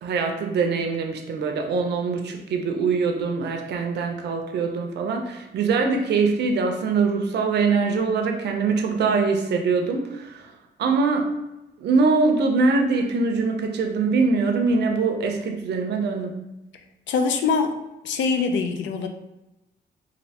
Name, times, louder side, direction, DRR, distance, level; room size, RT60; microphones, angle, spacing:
voice 1, 0.0-10.5 10.8-11.3 11.8-16.4, right 4 dB, 65° right, 3 dB, 0.5 m, -23 dB
voice 2, 17.1-17.7 18.0-19.1, left 5 dB, 80° left, 6 dB, 0.4 m, -23 dB
3.1 x 2.6 x 2.8 m, 0.95 s
wide cardioid pair, 165°, 19 cm